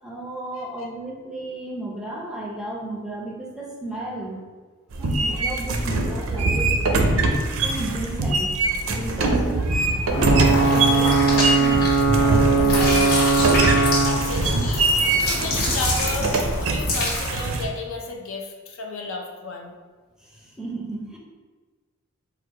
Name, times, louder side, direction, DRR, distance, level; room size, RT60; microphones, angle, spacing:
voice 1, 0.0-4.4 4.9-6.9 7.2-10.0 10.3-11.9 12.2-13.2 20.2-21.2, right 1 dB, 5° right, -2 dB, 0.6 m, -34 dB
sound 1, 4.9-17.7, right 2 dB, 70° right, 0.5 m, -23 dB
Ocean / Boat Water vehicle / Alarm, 10.1-17.6, right 3 dB, 30° left, 1.4 m, -22 dB
sound 2, 10.3-12.3 12.6-17.5, left 2 dB, 45° left, 1.4 m, -28 dB
voice 2, 14.0-16.3 16.6-19.7, left 3 dB, 65° left, 2 dB, 0.6 m, -33 dB
4.4 x 2.4 x 4.6 m, 1.4 s
head